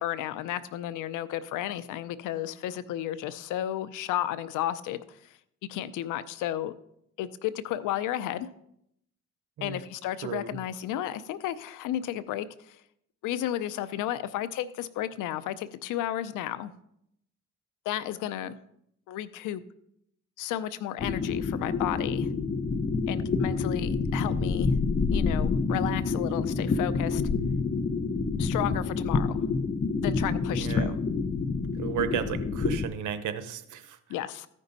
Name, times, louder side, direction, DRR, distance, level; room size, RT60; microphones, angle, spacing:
voice 1, 0.0-5.3 5.7-6.7 7.2-8.5 9.6-12.8 13.2-16.7 17.8-18.5 19.1-19.6 20.4-22.3 23.1-24.7 25.1-27.2 28.4-29.4 30.0-30.9 34.1-34.5, left 12 dB, 90° left, 14 dB, 0.6 m, -33 dB
voice 2, 10.2-10.6 30.5-31.0 31.7-34.0, right 9 dB, 80° right, 11 dB, 0.9 m, -34 dB
sound 1, 21.0-32.9, left 4 dB, 35° left, 0.8 m, -28 dB
14.0 x 5.4 x 4.0 m, 0.74 s
cardioid pair, 90°, 30 cm